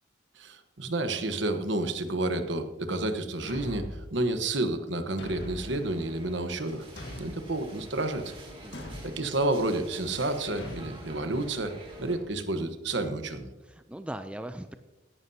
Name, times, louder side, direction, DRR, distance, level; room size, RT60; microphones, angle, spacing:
voice 1, 0.4-6.8 7.2-8.3 9.0-11.7 12.0-13.5, right 2 dB, 65° right, 8 dB, 1.1 m, -30 dB
Thump thud, 3.5-4.1 5.2-5.8 7.0-7.5 8.7-9.2 10.6-10.9, left 1 dB, 60° left, 1.7 m, -40 dB
sound 1, 5.3-12.2, right 1 dB, 25° right, 2.6 m, -47 dB
voice 2, 8.6-9.0 13.6-14.8, right 1 dB, 5° right, 9 dB, 0.3 m, -40 dB
17.0 x 11.0 x 2.8 m, 1.1 s
head